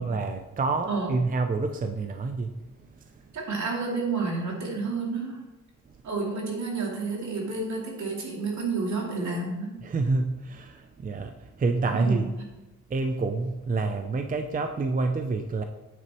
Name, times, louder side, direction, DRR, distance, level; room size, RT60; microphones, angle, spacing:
voice 1, 0.0-2.6 3.0-3.2 9.8-12.3 12.9-15.6, right 3 dB, 30° right, 6 dB, 0.5 m, -28 dB
voice 2, 0.8-1.2 3.3-5.4 6.0-9.8 11.9-12.3, right 3 dB, 65° right, -2 dB, 2.6 m, -30 dB
9.3 x 8.1 x 3.0 m, 1.0 s
wide cardioid pair, 135°, 31 cm